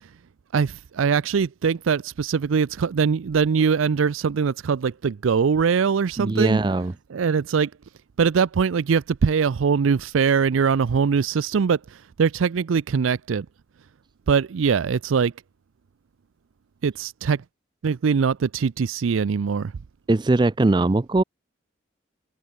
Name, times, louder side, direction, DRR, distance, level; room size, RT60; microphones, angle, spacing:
voice 1, 0.5-6.6 7.1-7.7 8.2-13.5 14.3-15.3 16.8-17.4 17.8-19.7, right 6 dB, 85° right, 0.4 m, -22 dB
voice 2, 6.2-6.9 20.1-21.2, right 2 dB, 20° right, 0.3 m, -20 dB
head